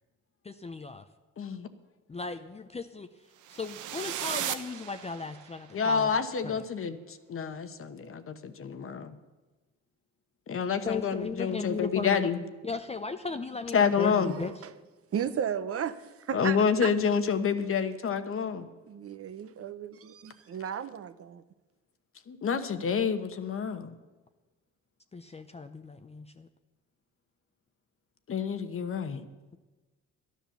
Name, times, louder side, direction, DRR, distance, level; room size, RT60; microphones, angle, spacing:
voice 1, 0.4-1.1 2.1-3.1 3.5-6.1 6.4-6.6 10.9-12.2 12.6-14.5 25.1-26.5, left 4 dB, 20° left, 0.6 m, -36 dB
voice 2, 1.4-1.7 5.7-9.1 10.5-12.4 13.7-14.3 16.3-18.7 22.3-23.9 28.3-29.2, left 6 dB, 45° left, 1.1 m, -28 dB
sound 1, 3.4-5.6, right 11 dB, 85° right, 0.8 m, -36 dB
voice 3, 14.3-14.7 15.1-16.9 18.9-21.4, right 8 dB, 50° right, 0.7 m, -35 dB
12.0 x 10.5 x 6.9 m
cardioid pair, 90°, 30 cm